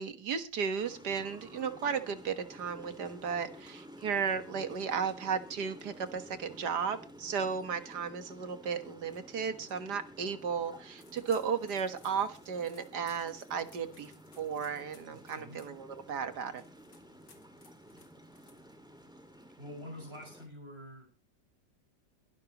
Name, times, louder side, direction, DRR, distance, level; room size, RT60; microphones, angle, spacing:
voice 1, 0.0-16.6, right 6 dB, 70° right, 10 dB, 2.0 m, -35 dB
sound 1, 0.8-20.5, equal, ahead, 2.0 m, -53 dB
sound 2, 11.0-19.0, left 4 dB, 75° left, 3.6 m, -62 dB
voice 2, 15.1-15.6 19.6-21.1, equal, 35° right, -3 dB, 6.0 m, -46 dB
21.5 x 12.0 x 3.0 m, 0.32 s
omnidirectional pair, 1.9 m